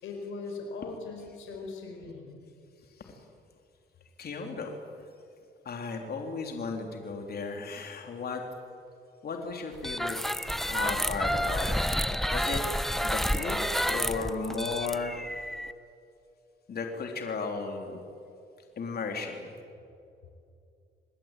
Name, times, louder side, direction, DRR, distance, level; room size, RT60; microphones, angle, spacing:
voice 1, 0.0-2.4, left 3 dB, 85° left, 2 dB, 5.0 m, -40 dB
voice 2, 4.2-4.8 5.7-8.4 9.2-10.2 10.7-11.8 12.3-15.2 16.7-18.0 18.8-19.5, left 4 dB, 50° left, 3 dB, 3.6 m, -35 dB
sound 1, 9.8-15.7, equal, ahead, 1.2 m, -30 dB
28.0 x 20.5 x 9.2 m, 2.5 s
cardioid pair, 90°, 20 cm